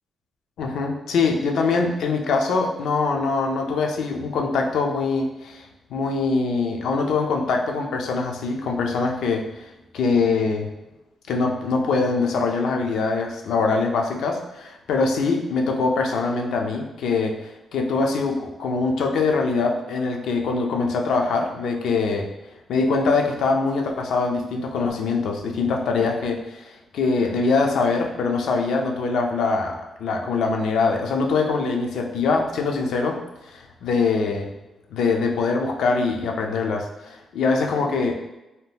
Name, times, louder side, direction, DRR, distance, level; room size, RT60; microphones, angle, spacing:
voice 1, 0.6-9.7 9.9-10.7 11.3-22.3 22.7-34.5 34.9-38.1, left 4 dB, 85° left, 2 dB, 0.4 m, -23 dB
2.8 x 2.1 x 3.4 m, 0.99 s
cardioid pair, 80°, 0 cm